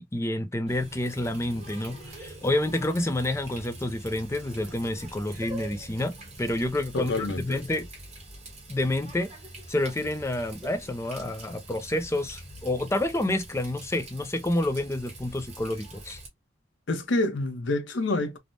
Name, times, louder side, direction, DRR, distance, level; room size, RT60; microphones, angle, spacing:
voice 1, 0.0-6.1 6.4-7.9 8.7-9.3 9.7-16.2, left 1 dB, 15° left, 0.4 m, -29 dB
Water tap faucet, 0.7-16.3, right 1 dB, 35° right, 1.1 m, -44 dB
voice 2, 6.9-7.6 16.9-18.4, left 2 dB, 70° left, 0.6 m, -27 dB
3.3 x 2.0 x 2.5 m
head